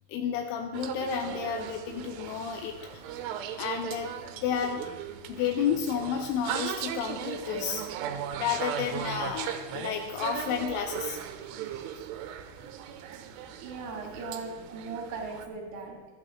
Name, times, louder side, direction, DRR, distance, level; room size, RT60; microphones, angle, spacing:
voice 1, 0.1-3.0 3.6-4.1 4.4-4.8 5.4-7.8 8.4-11.2, left 8 dB, 85° left, 4 dB, 3.2 m, -31 dB
sound 1, 0.7-15.5, right 9 dB, 90° right, 3.3 m, -38 dB
voice 2, 13.6-16.1, right 4 dB, 70° right, 0 dB, 4.3 m, -38 dB
25.0 x 9.0 x 3.1 m, 1.2 s
omnidirectional pair, 5.5 m